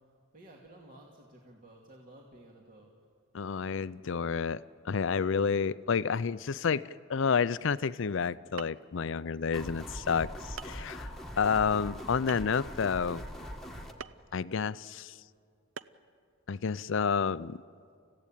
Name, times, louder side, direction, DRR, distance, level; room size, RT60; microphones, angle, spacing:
voice 1, 0.3-2.9, right 1 dB, 45° right, -1 dB, 2.3 m, -54 dB
voice 2, 3.3-6.8 7.1-13.2 14.3-15.1 16.5-17.6, left 6 dB, 65° left, 17 dB, 0.5 m, -30 dB
sound 1, 8.2-8.3 8.6-9.0 9.8-9.9 10.6-10.8 12.3-12.7 14.0-14.3 15.8-16.1, right 7 dB, 85° right, 0.6 m, -43 dB
sound 2, 9.5-13.9, equal, ahead, 1.5 m, -42 dB
29.0 x 15.5 x 9.0 m, 2.2 s
head